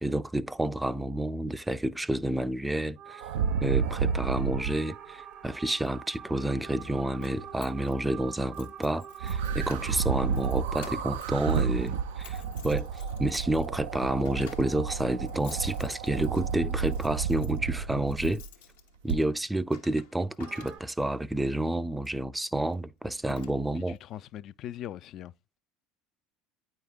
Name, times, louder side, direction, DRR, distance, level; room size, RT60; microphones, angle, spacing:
voice 1, 0.0-3.2 3.6-18.4 19.0-24.0, right 1 dB, 10° right, 0.4 m, -30 dB
sound 1, 3.0-13.5 20.4-20.8, right 9 dB, 55° right, 0.9 m, -47 dB
sound 2, 3.2-4.8 9.2-18.5 19.1-19.2, right 7 dB, 80° right, 0.4 m, -31 dB
Keys jangling, 5.9-21.2 22.0-22.2 22.7-22.8 23.1-24.0, left 7 dB, 80° left, 0.9 m, -53 dB
voice 2, 23.8-25.3, left 11 dB, 55° left, 0.3 m, -41 dB
9.0 x 5.1 x 2.3 m
hypercardioid pair, 75°, 0 cm